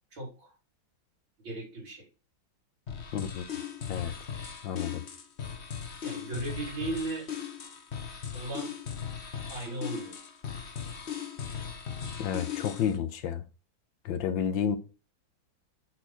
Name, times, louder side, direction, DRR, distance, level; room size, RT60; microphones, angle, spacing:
voice 1, 0.1-0.5 1.4-2.1 6.0-7.3 8.3-8.8 9.5-10.2, right 2 dB, 80° right, 4.8 m, -36 dB
sound 1, 2.9-13.0, left 8 dB, 40° left, 1.1 m, -38 dB
voice 2, 3.1-3.4 3.9-4.1 4.6-5.0 12.2-13.4 14.0-14.8, left 8 dB, 75° left, 1.5 m, -30 dB
8.2 x 4.3 x 4.3 m
omnidirectional pair, 2.1 m